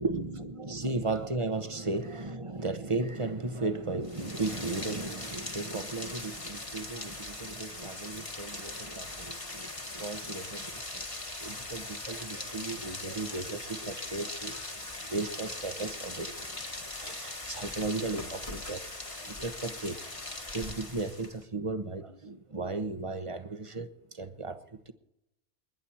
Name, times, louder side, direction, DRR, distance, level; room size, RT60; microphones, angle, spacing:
voice 1, 0.0-20.0 20.5-24.6 24.9-25.0, right 3 dB, 25° right, 1.1 m, -36 dB
Rain, 4.0-21.4, left 2 dB, 25° left, 1.7 m, -40 dB
29.5 x 11.0 x 4.4 m
omnidirectional pair, 1.2 m